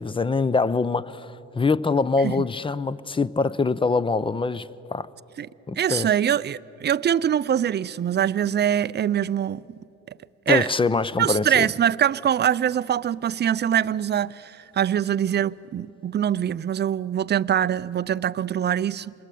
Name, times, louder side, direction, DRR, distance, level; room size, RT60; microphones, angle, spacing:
voice 1, 0.0-5.1 5.7-6.1 10.5-11.7, left 4 dB, 15° left, 0.6 m, -24 dB
voice 2, 5.8-9.8 10.5-10.7 11.2-19.1, right 9 dB, 35° right, 0.5 m, -23 dB
26.5 x 21.0 x 8.4 m
cardioid pair, 90°, 30 cm